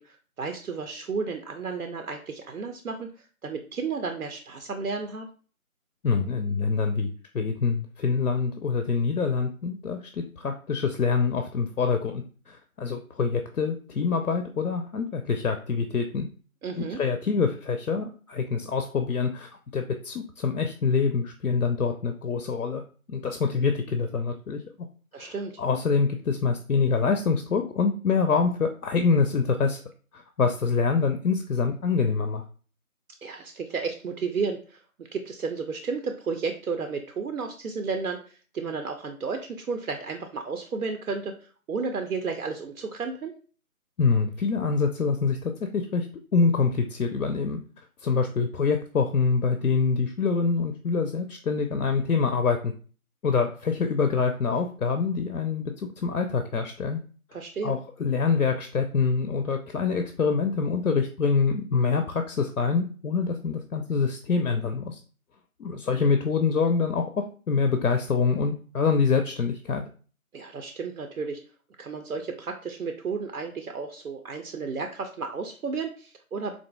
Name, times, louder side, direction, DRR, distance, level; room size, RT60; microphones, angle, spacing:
voice 1, 0.0-5.3 16.6-17.0 25.1-25.6 33.2-34.8 35.1-43.3 57.3-57.7 70.3-71.4 71.8-76.5, right 4 dB, 80° right, 5 dB, 0.5 m, -33 dB
voice 2, 6.0-16.3 16.8-22.8 23.1-24.6 25.2-29.8 30.1-32.4 44.0-46.1 46.3-47.6 48.0-52.7 53.2-55.7 56.0-57.0 57.6-65.0 65.6-67.0 67.5-69.8, left 5 dB, 80° left, 6 dB, 0.5 m, -25 dB
4.1 x 2.5 x 2.2 m, 0.39 s
figure-of-eight pair, 170°, 43 cm